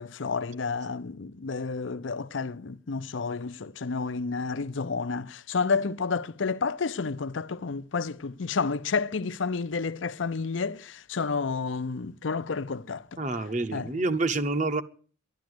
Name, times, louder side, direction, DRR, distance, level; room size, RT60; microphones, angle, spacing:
voice 1, 0.0-13.0 13.7-13.9, left 4 dB, 75° left, 0.7 m, -30 dB
voice 2, 13.2-14.8, right 3 dB, 40° right, 0.9 m, -27 dB
13.0 x 11.5 x 8.0 m
head